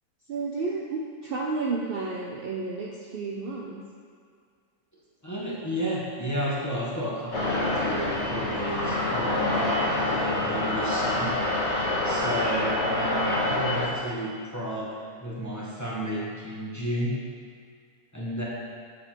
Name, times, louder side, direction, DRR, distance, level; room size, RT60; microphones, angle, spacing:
voice 1, 0.3-3.8, right 3 dB, 80° right, -2 dB, 0.5 m, -31 dB
voice 2, 5.2-9.8 10.0-11.3 12.0-17.1 18.1-18.4, equal, 15° left, -7 dB, 0.8 m, -32 dB
sound 1, 7.3-13.9, left 1 dB, 50° left, 1.4 m, -26 dB
6.7 x 4.2 x 4.4 m, 2.1 s
omnidirectional pair, 1.6 m